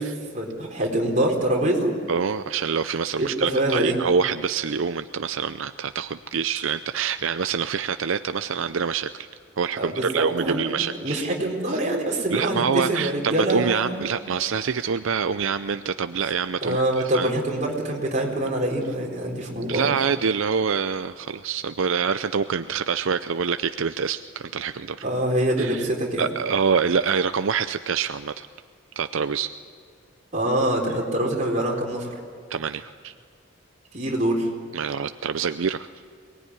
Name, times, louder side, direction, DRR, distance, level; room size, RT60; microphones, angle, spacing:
voice 1, 0.0-1.9 3.2-4.0 9.8-14.1 16.6-19.9 25.0-26.3 30.3-32.2 33.9-34.5, right 1 dB, 35° right, -1 dB, 4.2 m, -25 dB
voice 2, 2.1-9.3 9.6-11.2 11.7-11.8 12.3-17.3 19.7-25.0 25.6-25.9 26.2-28.5 29.0-29.5 32.5-33.1 34.7-35.9, right 6 dB, 75° right, 11 dB, 0.5 m, -26 dB
23.0 x 19.5 x 9.8 m, 2.2 s
head